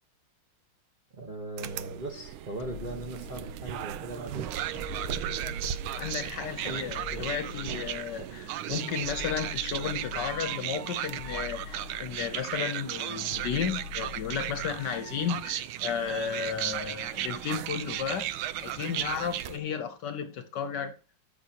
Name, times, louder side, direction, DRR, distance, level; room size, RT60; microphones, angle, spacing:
voice 1, 1.1-4.5, right 2 dB, 30° right, 0.9 m, -39 dB
sound 1, 1.6-19.6, right 11 dB, 80° right, 1.4 m, -35 dB
sound 2, 2.6-3.9 4.7-6.4 6.9-8.3 9.0-10.6 11.2-12.6 13.3-14.9, left 12 dB, 80° left, 1.4 m, -44 dB
voice 2, 5.9-18.3 18.6-20.9, left 7 dB, 65° left, 1.3 m, -33 dB
14.0 x 6.6 x 2.9 m
omnidirectional pair, 2.3 m